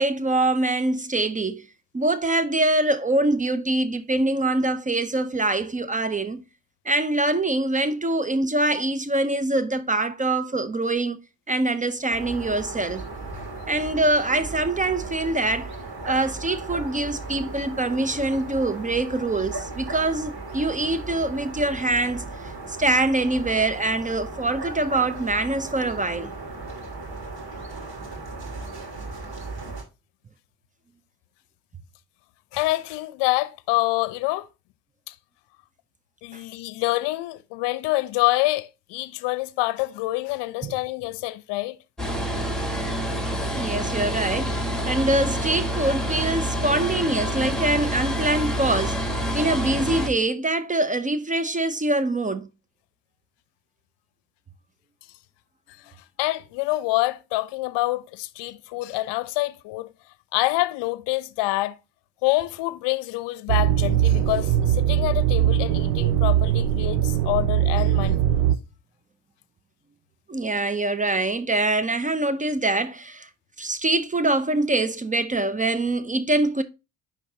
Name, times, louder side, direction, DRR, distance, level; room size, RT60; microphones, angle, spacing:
voice 1, 0.0-1.7 1.9-6.4 6.8-11.2 11.5-13.1 13.7-15.7 16.0-22.3 22.7-26.3 36.3-36.4 40.6-40.8 43.5-49.1 49.3-52.5 70.3-73.3 73.6-76.6, right 2 dB, 15° right, 0.6 m, -24 dB
sound 1, 12.1-29.8, right 3 dB, 50° right, 2.6 m, -36 dB
voice 2, 32.5-34.5 35.1-35.2 36.2-41.8 56.2-59.9 60.3-61.8 62.2-68.4, left 19 dB, 60° left, 0.7 m, -26 dB
sound 2, 42.0-50.1, equal, ahead, 1.7 m, -27 dB
sound 3, 63.5-68.6, right 11 dB, 70° right, 0.7 m, -21 dB
9.9 x 3.6 x 2.8 m
figure-of-eight pair, 45°, 48 cm